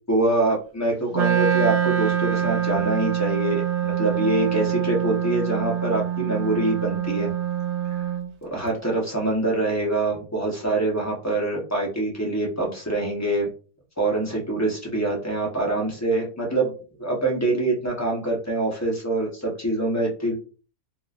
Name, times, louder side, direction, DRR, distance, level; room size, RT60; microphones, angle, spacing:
voice 1, 0.1-7.3 7.9-8.1 8.4-13.5 14.0-16.7 17.0-20.3, right 2 dB, 15° left, -2 dB, 0.7 m, -25 dB
Wind instrument woodwind instrument, 1.1-8.3, right 9 dB, 75° right, 0.6 m, -25 dB
4.0 x 2.5 x 2.4 m, 0.37 s
omnidirectional pair, 1.8 m